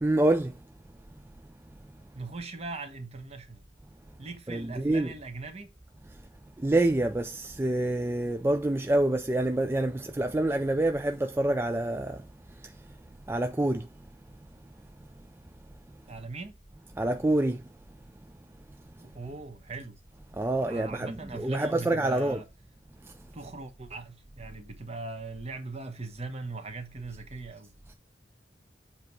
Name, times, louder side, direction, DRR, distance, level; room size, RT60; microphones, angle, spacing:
voice 1, 0.0-0.6 4.5-5.1 6.1-6.2 6.6-12.3 12.6-13.0 13.3-13.9 17.0-17.7 20.3-22.4 23.0-23.1 27.9-28.0, right 1 dB, 15° right, 0.4 m, -27 dB
voice 2, 2.1-3.6 4.2-5.7 16.1-16.6 19.0-20.0 20.6-22.5 23.3-27.7, right 3 dB, 35° right, 1.2 m, -40 dB
7.5 x 2.9 x 4.6 m
head